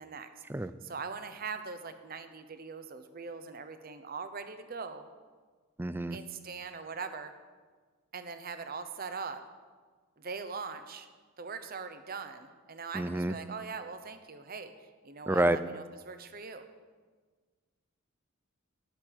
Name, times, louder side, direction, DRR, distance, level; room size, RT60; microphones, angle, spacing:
voice 1, 0.0-0.4 0.8-5.1 6.1-7.3 8.1-9.4 10.2-11.1 11.4-14.7 15.0-16.7, right 5 dB, 45° right, 9 dB, 0.8 m, -41 dB
voice 2, 5.8-6.2 12.9-13.3 15.3-15.6, right 1 dB, 10° right, 13 dB, 0.4 m, -28 dB
12.0 x 6.6 x 9.0 m, 1.5 s
head